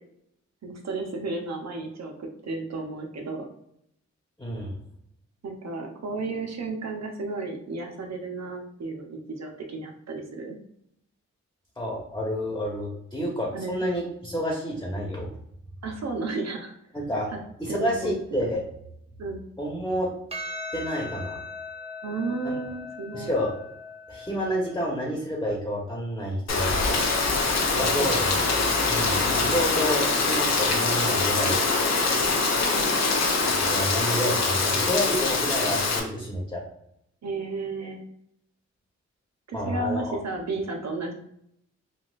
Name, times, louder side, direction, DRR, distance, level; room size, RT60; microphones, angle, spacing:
voice 1, 0.6-3.5 5.4-10.6 13.5-13.8 15.8-16.7 17.7-18.1 19.2-19.4 22.0-23.3 27.5-28.5 32.7-33.4 37.2-38.0 39.5-41.1, right 3 dB, 65° right, 3 dB, 0.8 m, -33 dB
voice 2, 4.4-4.7 11.8-15.3 16.9-17.3 17.6-18.6 19.6-20.1 20.7-21.4 22.4-22.5 23.1-23.5 24.1-27.1 27.7-28.4 28.9-31.6 33.4-36.6 39.5-40.0, equal, 10° left, -3 dB, 1.3 m, -29 dB
Percussion, 20.3-24.9, left 2 dB, 20° right, 1.0 m, -39 dB
Rain, 26.5-36.0, left 3 dB, 65° left, 0.7 m, -24 dB
4.0 x 2.4 x 2.5 m, 0.75 s
cardioid pair, 45°, 29 cm